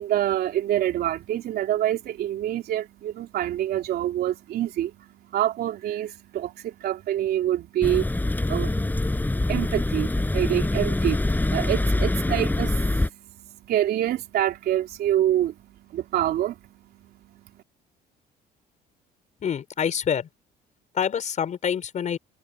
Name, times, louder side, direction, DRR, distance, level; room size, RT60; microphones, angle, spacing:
voice 1, 0.0-16.6 16.9-17.4, right 12 dB, 70° right, 3.2 m, -27 dB
sound 1, 7.8-13.1, left 2 dB, 10° left, 5.4 m, -24 dB
voice 2, 19.4-20.3 20.9-22.2, left 8 dB, 45° left, 4.8 m, -26 dB
cardioid pair, 110°, 17 cm